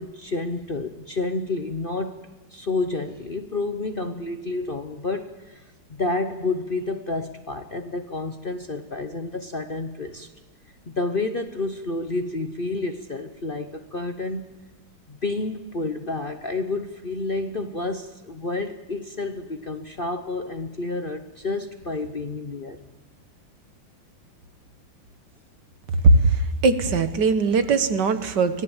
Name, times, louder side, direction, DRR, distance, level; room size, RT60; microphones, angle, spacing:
voice 1, 0.0-5.6 5.9-10.3 10.9-14.4 15.1-22.8, left 3 dB, 45° left, 7 dB, 0.7 m, -30 dB
voice 2, 26.0-28.6, right 3 dB, 60° right, 10 dB, 1.7 m, -20 dB
25.0 x 18.0 x 7.2 m, 1.2 s
omnidirectional pair, 2.3 m